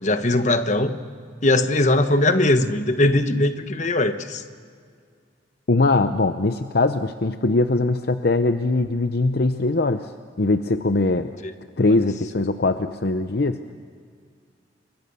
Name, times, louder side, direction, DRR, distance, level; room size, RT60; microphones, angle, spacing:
voice 1, 0.0-1.0 1.4-4.4, left 2 dB, 40° left, 9 dB, 1.2 m, -20 dB
voice 2, 5.7-10.1 10.4-11.3 11.8-13.7, left 2 dB, 55° left, 9 dB, 0.7 m, -21 dB
29.0 x 23.5 x 6.9 m, 2.1 s
head